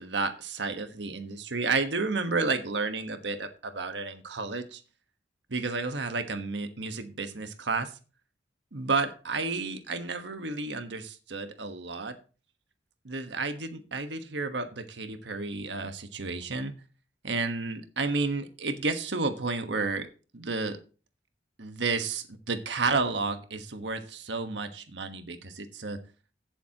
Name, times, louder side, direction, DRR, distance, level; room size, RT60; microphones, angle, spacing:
voice 1, 0.0-4.8 5.5-7.9 8.7-12.2 13.0-16.7 17.2-20.1 20.3-20.8 21.6-26.0, right 3 dB, 80° right, 7 dB, 1.3 m, -31 dB
16.5 x 7.2 x 2.9 m, 0.35 s
head